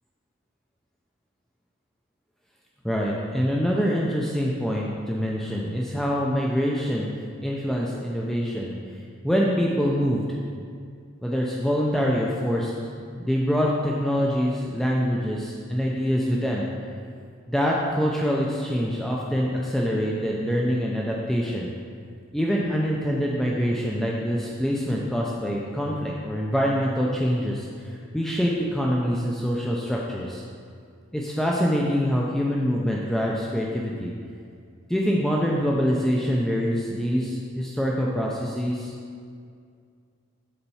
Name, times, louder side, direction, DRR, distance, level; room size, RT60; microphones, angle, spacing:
voice 1, 2.8-7.1 7.4-8.7 9.2-10.2 11.2-12.7 13.1-16.7 17.5-21.7 22.3-30.4 31.1-34.1 34.9-38.9, equal, ahead, -3 dB, 0.5 m, -25 dB
7.0 x 4.4 x 5.5 m, 2.2 s
head